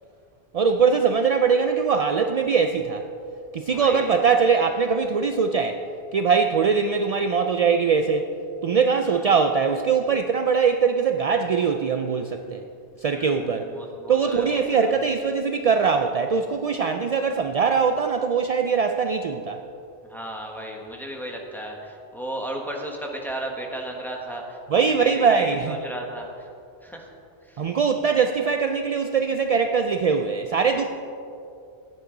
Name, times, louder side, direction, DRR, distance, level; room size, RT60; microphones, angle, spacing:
voice 1, 0.5-3.0 3.5-5.8 6.1-8.3 8.6-12.6 13.0-13.7 14.1-19.6 24.7-25.8 27.6-30.8, right 5 dB, 55° right, 6 dB, 0.4 m, -22 dB
voice 2, 3.7-4.2 9.0-9.3 13.1-14.9 20.0-26.5 26.8-27.1 27.4-27.6, right 1 dB, ahead, 0 dB, 1.3 m, -35 dB
15.5 x 9.7 x 3.9 m, 2.6 s
omnidirectional pair, 1.1 m